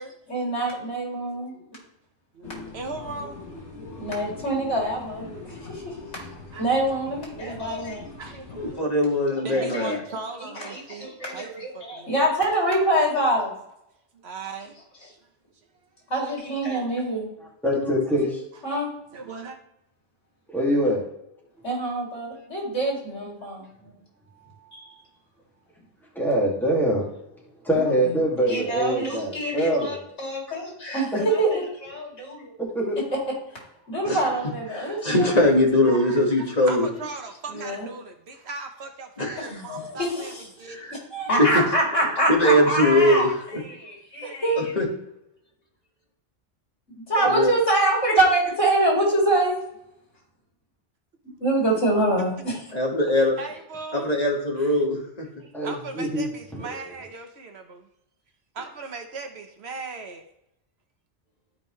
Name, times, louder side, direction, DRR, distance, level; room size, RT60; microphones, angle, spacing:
voice 1, 0.3-1.6 4.0-5.9 6.6-8.0 9.5-10.0 10.6-13.5 16.1-17.3 18.6-18.9 21.6-23.7 24.7-24.9 27.8-28.1 28.4-32.5 33.9-35.5 37.5-37.9 39.5-40.4 41.1-43.2 43.6-44.7 46.9-49.6 51.4-52.6, right 1 dB, 85° left, -3 dB, 3.5 m, -25 dB
voice 2, 2.3-3.4 6.1-6.7 7.7-7.8 8.2-9.0 9.4-12.2 14.2-14.8 19.1-19.6 34.9-35.1 35.9-40.8 52.2-52.3 53.2-54.1 54.6-54.7 55.4-57.9 58.5-60.2, right 4 dB, 65° right, 5 dB, 1.2 m, -38 dB
sound 1, 2.4-8.7, left 3 dB, 70° left, 1.9 m, -42 dB
voice 3, 8.5-10.0 34.1-34.2 34.7-36.9 39.2-39.6 40.7-40.9 41.4-41.5 42.3-43.3 44.6-44.9 47.2-47.5 52.7-53.3 53.9-55.3, left 1 dB, 35° left, 0 dB, 1.8 m, -21 dB
voice 4, 17.6-18.4 20.5-21.0 23.8-23.9 26.2-27.1 27.6-30.0 31.1-31.2 32.6-33.0 55.5-56.2 56.5-56.7, equal, ahead, -4 dB, 2.2 m, -24 dB
13.0 x 5.2 x 3.2 m, 0.81 s
omnidirectional pair, 1.2 m